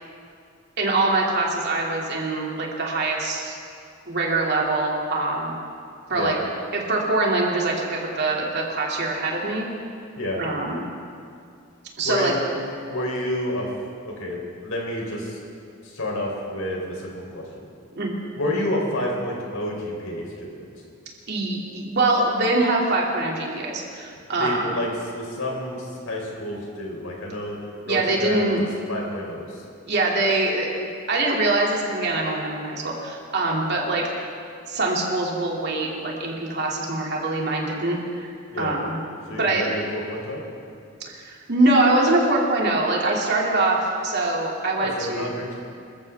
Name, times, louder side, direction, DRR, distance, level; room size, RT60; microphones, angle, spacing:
voice 1, 0.8-3.6 4.1-5.5 6.1-6.3 6.7-9.7 10.4-10.9 12.0-12.3 18.0-18.2 21.3-24.6 27.8-28.6 29.8-34.0 34.7-38.3 38.6-39.0 39.4-39.7 41.1-45.3, right 2 dB, 55° right, -2 dB, 2.8 m, -23 dB
voice 2, 12.0-13.7 14.2-15.4 15.8-17.7 18.4-20.7 24.4-27.6 27.9-29.6 38.5-38.7 39.3-40.4 44.8-45.6, left 1 dB, 90° left, -1 dB, 3.9 m, -29 dB
26.5 x 13.5 x 3.6 m, 2.4 s
head